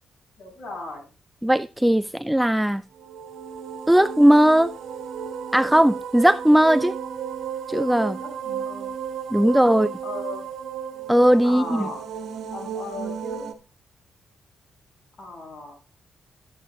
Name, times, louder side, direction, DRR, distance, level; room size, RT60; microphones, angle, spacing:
voice 1, 0.4-1.0 8.2-8.9 9.7-10.5 11.4-12.1 12.5-13.5 15.2-15.8, left 2 dB, 60° left, 6.7 m, -37 dB
voice 2, 1.4-2.8 3.9-4.7 5.5-6.9 7.7-8.2 9.3-9.9 11.1-11.9, equal, 5° right, 0.4 m, -18 dB
sound 1, 2.9-13.5, right 7 dB, 80° right, 1.5 m, -33 dB
14.5 x 8.7 x 2.3 m
cardioid pair, 70°, 0 cm